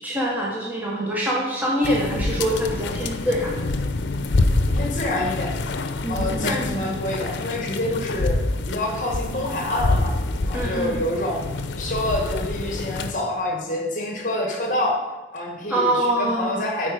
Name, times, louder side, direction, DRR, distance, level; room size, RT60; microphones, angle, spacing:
voice 1, 0.0-3.5 6.0-6.6 10.5-11.0 15.7-16.7, right 1 dB, 10° right, -4 dB, 1.0 m, -24 dB
sound 1, 1.8-13.1, left 2 dB, 80° left, 0.5 m, -26 dB
voice 2, 4.7-5.6 6.1-10.2 10.5-11.5 11.7-16.9, left 1 dB, 45° left, 0 dB, 1.3 m, -27 dB
9.0 x 4.3 x 4.8 m, 1.1 s
head